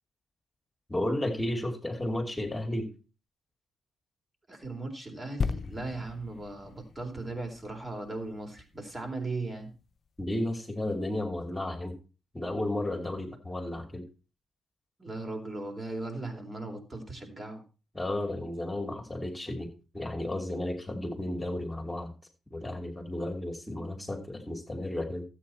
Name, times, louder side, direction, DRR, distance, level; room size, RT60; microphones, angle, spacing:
voice 1, 0.9-2.9 10.2-11.9 12.3-14.0 17.9-22.1 22.5-25.3, left 1 dB, 15° left, 2 dB, 2.8 m, -33 dB
voice 2, 4.5-9.7 15.0-17.6, right 2 dB, 30° right, 3 dB, 4.1 m, -38 dB
sound 1, 5.4-9.0 9.6-9.7, left 5 dB, 50° left, 0.7 m, -37 dB
13.0 x 8.7 x 4.4 m, 0.33 s
supercardioid pair, 50°, 0 cm